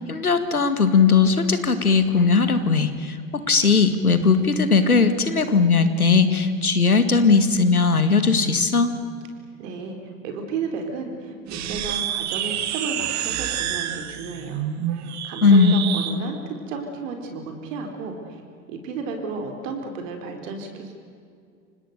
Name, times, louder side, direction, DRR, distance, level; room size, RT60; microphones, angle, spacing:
voice 1, 0.0-8.9 15.4-15.8, left 4 dB, 90° left, 10 dB, 2.2 m, -18 dB
voice 2, 9.6-18.4 18.7-20.9, right 4 dB, 60° right, 5 dB, 4.2 m, -33 dB
sound 1, 11.5-16.2, right 10 dB, 40° right, 2.2 m, -28 dB
29.5 x 26.0 x 6.7 m, 2.3 s
figure-of-eight pair, 80°, 43 cm